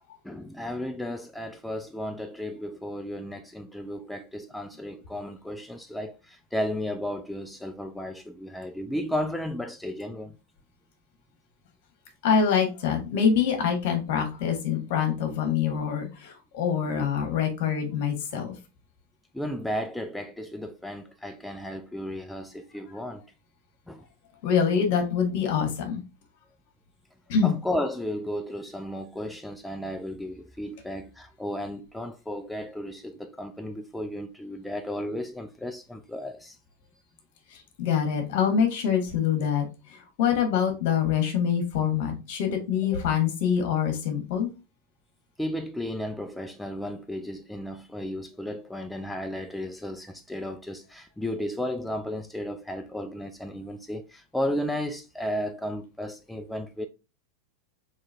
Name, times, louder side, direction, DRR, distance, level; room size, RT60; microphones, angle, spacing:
voice 1, 0.2-10.4 16.8-17.1 19.3-23.3 23.9-24.1 27.4-36.6 42.9-43.1 45.4-56.9, left 1 dB, 5° left, 0.4 m, -34 dB
voice 2, 12.2-18.5 24.4-26.0 27.3-27.5 37.8-39.6 40.2-44.5, left 7 dB, 60° left, 1.3 m, -25 dB
3.7 x 3.2 x 3.3 m
hypercardioid pair, 95°, 0 cm